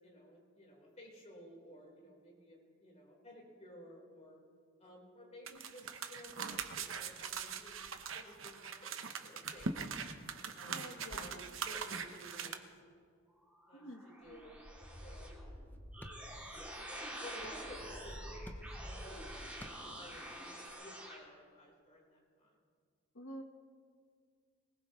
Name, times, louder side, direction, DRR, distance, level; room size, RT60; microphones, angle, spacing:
voice 1, 0.0-4.4 4.8-10.0 10.5-12.6 13.7-14.6 15.0-15.4 15.9-16.4 16.7-19.3 19.6-22.6, equal, 35° left, -3 dB, 4.4 m, -55 dB
sound 1, 5.5-12.5, right 6 dB, 75° right, 1.0 m, -42 dB
voice 2, 9.7-10.2 10.7-11.4 13.7-14.4 23.1-23.4, equal, 70° left, 5 dB, 1.3 m, -50 dB
sound 2, 13.5-21.2, equal, 5° right, 2.9 m, -47 dB
sound 3, 15.6-20.7, equal, 10° left, 0.9 m, -58 dB
21.5 x 19.5 x 3.2 m, 2.1 s
head